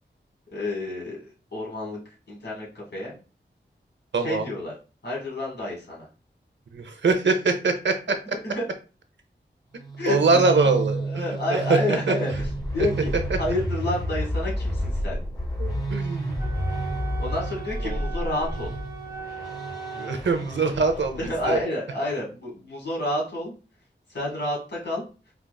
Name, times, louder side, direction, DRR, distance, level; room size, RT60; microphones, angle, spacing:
voice 1, 0.5-2.0 2.3-3.2 4.2-4.7 5.0-6.1 8.4-8.6 10.0-10.4 10.9-12.3 12.7-13.1 13.4-15.2 17.2-18.7 21.2-23.5 24.1-25.0, left 1 dB, 70° left, -3 dB, 1.8 m, -29 dB
voice 2, 4.1-4.4 6.7-8.2 10.1-12.1 12.8-12.9 15.6-16.4 17.8-18.0 20.0-21.6, right 4 dB, 80° right, 6 dB, 0.6 m, -23 dB
sound 1, 9.8-21.6, right 1 dB, 20° left, 1.2 m, -30 dB
Wind instrument woodwind instrument, 16.4-20.2, right 6 dB, 15° right, 0.9 m, -38 dB
4.5 x 2.4 x 2.2 m, 0.34 s
wide cardioid pair, 90°, 19 cm